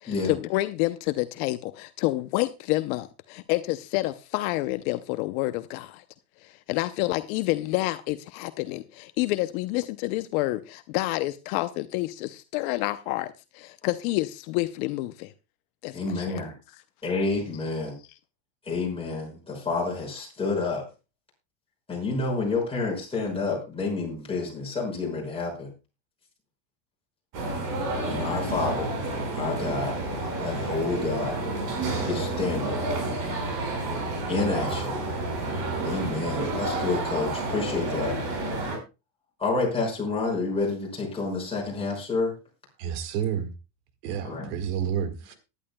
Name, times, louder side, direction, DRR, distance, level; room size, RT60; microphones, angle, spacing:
voice 1, 0.0-6.0 6.4-15.3 15.8-16.4, left 18 dB, 60° left, 0.8 m, -28 dB
voice 2, 15.9-16.5 17.0-18.0 18.6-20.9 21.9-25.7 28.1-28.9 29.4-31.4 32.1-32.8 34.3-35.0 35.8-38.2 39.4-42.4 44.2-44.6, left 3 dB, 10° left, 5.6 m, -29 dB
sound 1, 27.3-38.8, right 2 dB, 45° right, 5.0 m, -30 dB
voice 3, 42.8-43.5 44.0-45.3, right 8 dB, 65° right, 1.9 m, -29 dB
19.0 x 11.0 x 2.2 m
supercardioid pair, 155°, 49 cm